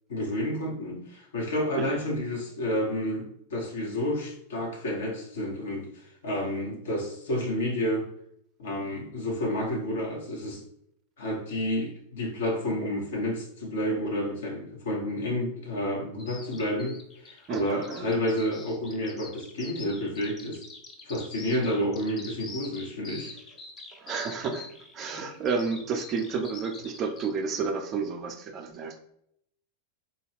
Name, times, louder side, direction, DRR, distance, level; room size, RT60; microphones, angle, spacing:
voice 1, 0.1-5.9 6.2-8.1 8.6-10.6 11.2-17.0 17.2-20.6 21.1-23.3, left 1 dB, 60° left, -1 dB, 1.0 m, -30 dB
Bird vocalization bird call bird song, 16.2-27.3, left 4 dB, 25° left, 0.6 m, -45 dB
voice 2, 17.5-18.2 24.0-29.0, right 5 dB, 30° right, 5 dB, 0.5 m, -31 dB
4.1 x 2.2 x 3.4 m, 0.72 s
figure-of-eight pair, 90°, 0 cm